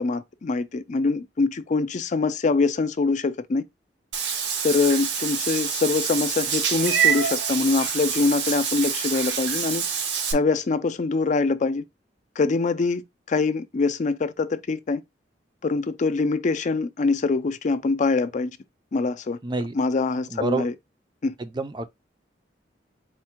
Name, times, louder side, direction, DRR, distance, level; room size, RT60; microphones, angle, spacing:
voice 1, 0.0-3.6 4.6-9.8 10.3-11.8 12.4-13.0 13.3-15.0 15.6-18.5 18.9-19.4 19.7-20.7 21.2-21.3, left 3 dB, 45° left, 0.4 m, -24 dB
Meow / Water / Bathtub (filling or washing), 4.1-10.3, right 7 dB, 75° right, 0.8 m, -26 dB
voice 2, 19.4-19.8 20.3-20.7 21.4-21.9, right 3 dB, 25° right, 0.4 m, -28 dB
4.4 x 2.1 x 4.3 m
head